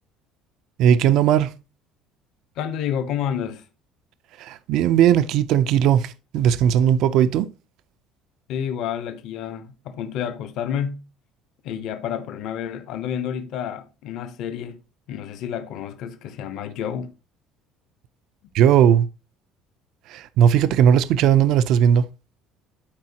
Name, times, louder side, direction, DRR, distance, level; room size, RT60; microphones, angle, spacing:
voice 1, 0.8-1.5 4.4-7.5 18.5-19.1 20.1-22.1, right 9 dB, 55° right, 0.5 m, -17 dB
voice 2, 2.6-3.7 8.5-11.0 11.6-14.8 15.1-17.1, left 9 dB, 55° left, 1.1 m, -29 dB
12.0 x 4.7 x 2.9 m
cardioid pair, 160°, 0 cm